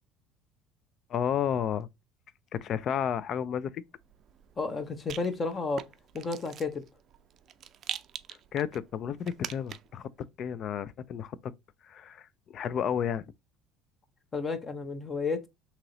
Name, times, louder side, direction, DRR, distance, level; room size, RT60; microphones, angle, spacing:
voice 1, 1.1-1.9 2.5-3.8 8.5-10.1 10.4-11.5 11.8-13.2, left 8 dB, 50° left, 0.3 m, -32 dB
Rattle, 3.9-10.0, right 9 dB, 50° right, 0.4 m, -44 dB
voice 2, 4.6-5.8 6.1-6.8 14.3-15.5, left 4 dB, 30° left, 0.8 m, -32 dB
2.9 x 2.8 x 3.8 m
supercardioid pair, 90°, 0 cm